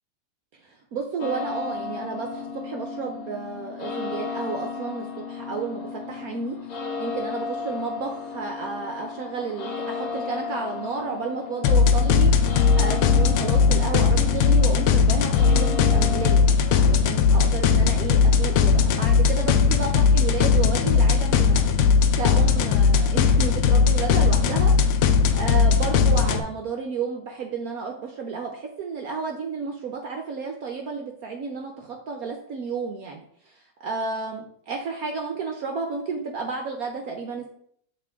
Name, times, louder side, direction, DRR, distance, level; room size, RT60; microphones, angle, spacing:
voice 1, 0.5-6.6 7.0-21.7 22.1-37.5, right 5 dB, 75° right, 2 dB, 0.8 m, -32 dB
sound 1, 1.2-16.4, left 5 dB, 50° left, 1.3 m, -34 dB
sound 2, 11.6-26.4, left 5 dB, 85° left, 1.5 m, -19 dB
7.3 x 3.7 x 3.5 m, 0.67 s
omnidirectional pair, 2.3 m